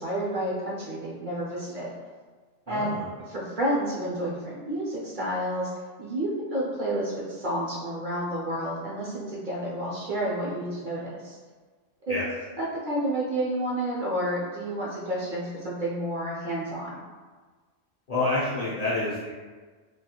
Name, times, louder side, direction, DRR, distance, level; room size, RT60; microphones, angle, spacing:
voice 1, 0.0-1.9 2.7-3.0 3.3-5.7 6.0-11.4 12.1-12.2 12.6-17.0, right 1 dB, 55° right, -6 dB, 0.6 m, -30 dB
voice 2, 2.7-3.0 12.1-12.3 18.1-19.3, left 2 dB, 50° left, -9 dB, 0.5 m, -28 dB
2.3 x 2.3 x 2.8 m, 1.4 s
omnidirectional pair, 1.2 m